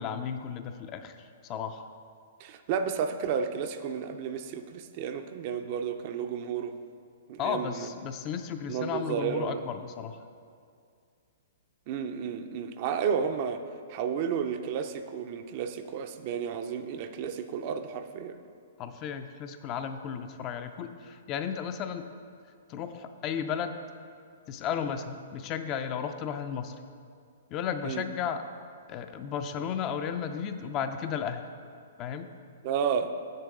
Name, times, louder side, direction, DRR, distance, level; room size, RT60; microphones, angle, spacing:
voice 1, 0.0-1.9 7.4-10.3 18.8-22.1 22.7-23.8 24.5-26.7 27.5-28.4 28.9-31.4 32.0-32.3, left 7 dB, 30° left, 8 dB, 0.4 m, -34 dB
voice 2, 2.4-6.8 7.3-7.9 8.7-9.6 11.9-13.6 13.9-18.4 27.8-28.0 32.6-33.1, right 7 dB, 45° right, 8 dB, 0.4 m, -32 dB
7.6 x 6.6 x 3.7 m, 2.3 s
hypercardioid pair, 135°, 0 cm